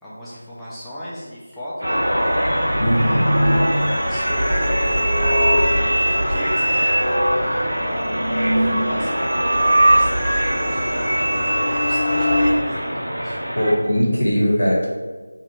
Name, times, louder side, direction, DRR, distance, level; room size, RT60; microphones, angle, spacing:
voice 1, 0.0-2.1 3.3-13.4, equal, ahead, -13 dB, 0.4 m, -36 dB
sound 1, 1.8-12.5, equal, 60° right, 0.7 m, -20 dB
sound 2, 1.8-13.7, equal, 80° right, 1.1 m, -26 dB
voice 2, 2.8-3.2 13.6-14.9, equal, 75° left, -4 dB, 0.7 m, -19 dB
2.6 x 2.4 x 2.8 m, 1.4 s
figure-of-eight pair, 165°, 0 cm